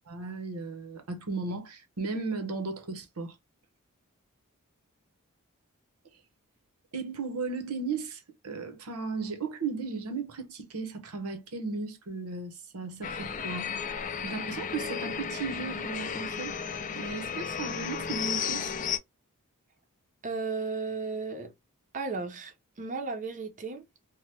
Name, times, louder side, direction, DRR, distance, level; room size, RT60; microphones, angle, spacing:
voice 1, 0.1-3.4 6.9-13.7 14.2-16.6 16.9-18.7, right 4 dB, 70° right, 0.8 m, -35 dB
sound 1, 13.0-19.0, left 7 dB, 35° left, 0.4 m, -34 dB
voice 2, 20.2-21.5 21.9-23.8, right 4 dB, 35° right, 0.6 m, -34 dB
2.9 x 2.1 x 3.3 m
head